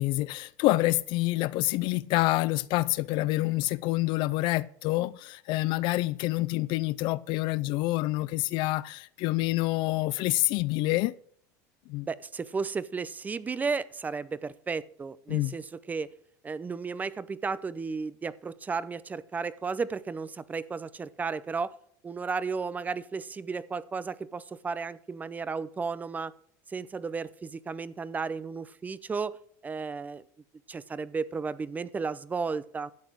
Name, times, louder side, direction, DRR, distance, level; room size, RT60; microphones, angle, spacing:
voice 1, 0.0-11.1 11.9-12.1 15.3-15.5, left 19 dB, 55° left, 0.5 m, -27 dB
voice 2, 12.0-16.1 16.4-21.7 22.0-26.3 26.7-29.4 29.6-30.2 30.7-32.9, right 5 dB, 15° right, 0.6 m, -34 dB
13.0 x 8.3 x 4.7 m
supercardioid pair, 125°, 10 cm